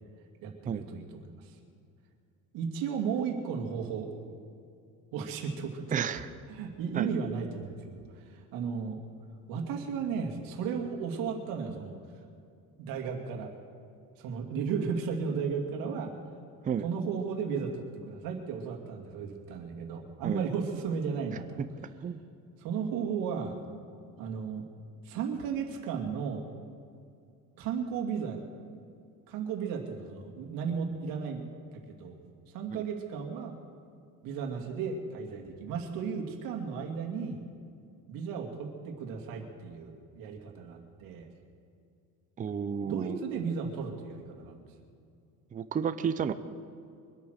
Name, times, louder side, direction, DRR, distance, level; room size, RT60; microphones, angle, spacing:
voice 1, 0.4-1.0 1.4-1.5 2.5-4.1 5.1-5.9 6.5-9.0 9.5-12.0 12.8-13.5 14.2-16.1 16.8-21.6 22.6-23.6 24.2-24.6 25.0-26.5 27.6-28.4 29.3-31.4 31.7-32.2 32.5-33.6 34.2-37.4 38.1-41.3 42.8-44.6, right 6 dB, 75° right, 2 dB, 2.6 m, -34 dB
voice 2, 5.9-6.3 6.9-7.1 16.6-16.9 20.2-20.4 22.0-22.2 32.7-32.8 42.4-43.2 45.5-46.3, right 7 dB, 25° right, 11 dB, 0.6 m, -31 dB
23.0 x 8.5 x 6.6 m, 2.4 s
cardioid pair, 130°, 34 cm